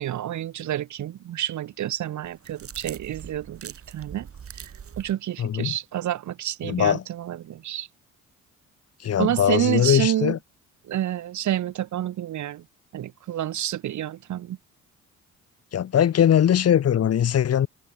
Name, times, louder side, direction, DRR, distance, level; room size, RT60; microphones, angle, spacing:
voice 1, 0.0-4.3 5.0-7.9 9.2-10.4 10.9-12.6 12.9-14.6, right 12 dB, 70° right, 2.3 m, -29 dB
sound 1, 2.2-5.1, right 7 dB, 50° right, 3.6 m, -42 dB
voice 2, 5.4-5.7 6.6-7.0 9.0-10.4 15.7-17.7, left 9 dB, 55° left, 1.4 m, -21 dB
cardioid pair, 90°, 30 cm